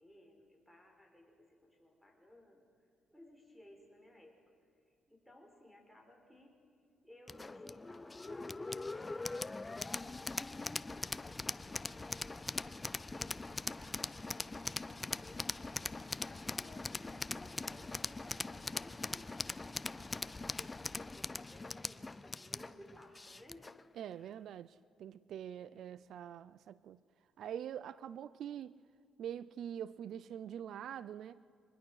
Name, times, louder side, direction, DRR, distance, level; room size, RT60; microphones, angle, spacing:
voice 1, 0.0-2.7 3.1-4.4 5.1-6.6 7.0-11.2 11.6-12.8 13.1-19.9 20.5-23.7 24.1-24.4 25.6-26.1, left 1 dB, ahead, 0 dB, 5.2 m, -59 dB
sound 1, 7.3-23.8, left 3 dB, 20° left, 0.5 m, -41 dB
voice 2, 24.0-27.0 27.4-28.8 29.2-31.4, right 9 dB, 70° right, 17 dB, 0.5 m, -44 dB
24.0 x 21.0 x 6.4 m, 2.3 s
cardioid pair, 90°, 0 cm